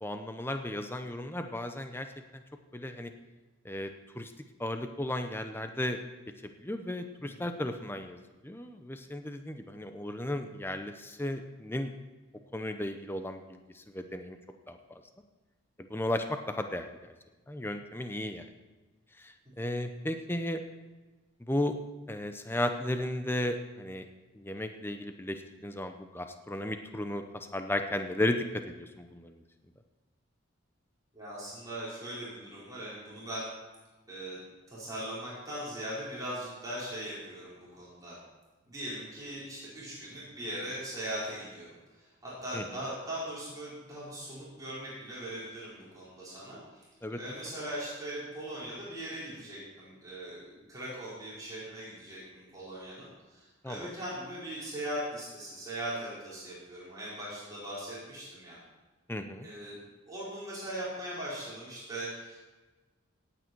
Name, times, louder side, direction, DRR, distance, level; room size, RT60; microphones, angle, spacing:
voice 1, 0.0-2.1 2.3-2.4 2.7-3.1 3.6-3.9 4.1-4.3 4.6-6.0 6.6-8.2 8.4-11.9 12.5-14.4 14.7-15.0 15.9-16.9 17.5-18.5 19.2-20.6 21.5-21.7 22.1-24.1 24.3-29.4 42.5-42.6 47.0-47.2 53.6-53.9 59.1-59.5, left 1 dB, 10° left, 7 dB, 0.6 m, -34 dB
voice 2, 31.1-33.5 34.1-34.4 34.7-38.2 38.7-41.7 42.0-46.8 47.1-58.6 59.4-59.8 60.1-62.4, right 1 dB, 15° right, -9 dB, 4.8 m, -40 dB
17.5 x 9.0 x 4.6 m, 1.2 s
head